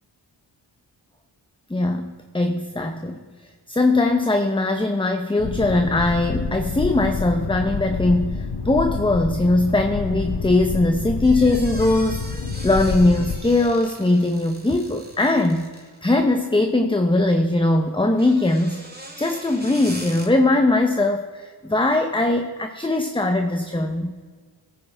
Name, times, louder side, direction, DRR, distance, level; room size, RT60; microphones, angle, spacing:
voice 1, 1.7-3.3 3.7-15.7 16.0-18.8 19.2-24.1, left 2 dB, 10° left, 5 dB, 0.7 m, -20 dB
Boat Water vehicle, 5.4-13.4, left 4 dB, 60° left, 1.1 m, -28 dB
sound 1, 11.2-16.1 18.0-20.3, right 1 dB, 20° right, 1.9 m, -40 dB
16.0 x 9.3 x 3.4 m, 1.5 s
wide cardioid pair, 50°, 46 cm